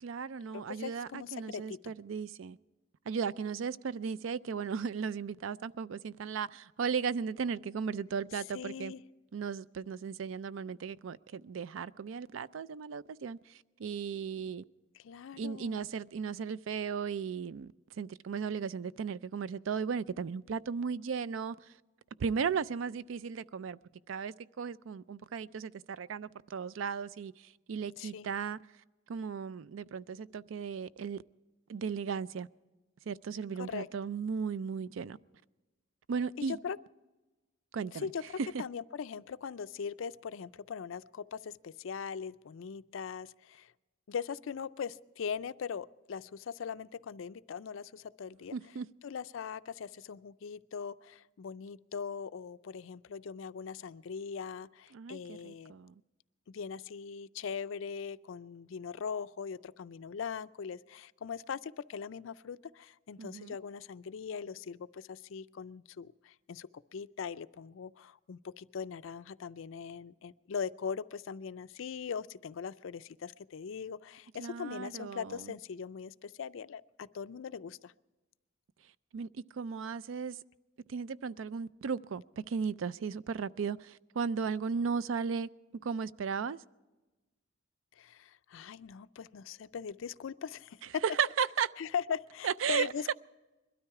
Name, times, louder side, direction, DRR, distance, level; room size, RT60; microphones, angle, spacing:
voice 1, 0.0-2.6 3.1-8.9 9.3-14.6 15.4-21.8 22.2-23.8 24.1-28.6 29.1-31.2 31.7-32.5 33.1-35.2 36.1-36.6 37.7-38.1 38.4-38.6 48.5-48.9 54.9-55.9 63.2-63.6 74.4-75.5 79.1-80.4 80.9-85.5 85.8-86.6 91.1-91.7 92.4-93.1, right 6 dB, 75° right, 0.4 m, -36 dB
voice 2, 0.5-1.9 8.5-9.0 15.0-15.8 28.0-28.3 33.6-33.9 36.5-36.8 37.9-43.7 44.1-48.6 49.0-55.7 56.5-77.9 88.0-91.0 91.8-93.1, left 6 dB, 80° left, 0.4 m, -40 dB
21.5 x 13.0 x 4.7 m
head